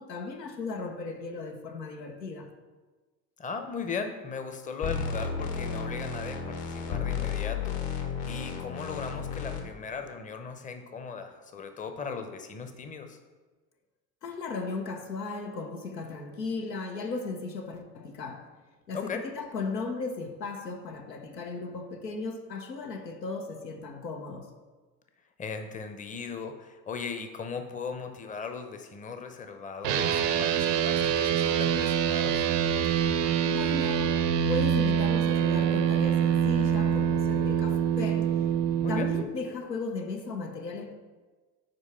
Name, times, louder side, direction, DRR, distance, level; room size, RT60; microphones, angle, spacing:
voice 1, 0.0-2.5 14.2-18.5 18.9-24.5 33.5-38.4 38.9-40.9, left 3 dB, 90° left, 0.7 m, -36 dB
voice 2, 3.4-13.2 18.9-19.2 25.4-32.5 38.8-39.1, left 5 dB, 15° left, 0.6 m, -38 dB
sound 1, 4.8-9.6, left 6 dB, 55° left, 1.2 m, -33 dB
sound 2, 29.8-39.2, right 8 dB, 70° right, 0.7 m, -25 dB
5.2 x 4.7 x 5.5 m
figure-of-eight pair, 65°, 48 cm